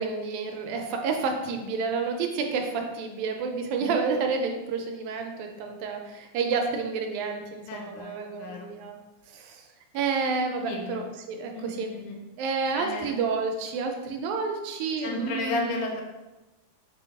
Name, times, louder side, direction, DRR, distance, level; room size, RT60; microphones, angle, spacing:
voice 1, 0.0-9.0 9.3-9.6 9.9-11.9 12.4-15.8, right 4 dB, 80° right, 3 dB, 1.9 m, -30 dB
voice 2, 7.7-8.7 10.6-11.0 11.6-12.2 12.7-13.2 15.0-16.0, left 2 dB, 85° left, 2 dB, 2.1 m, -34 dB
5.4 x 2.2 x 3.4 m, 1.1 s
omnidirectional pair, 3.5 m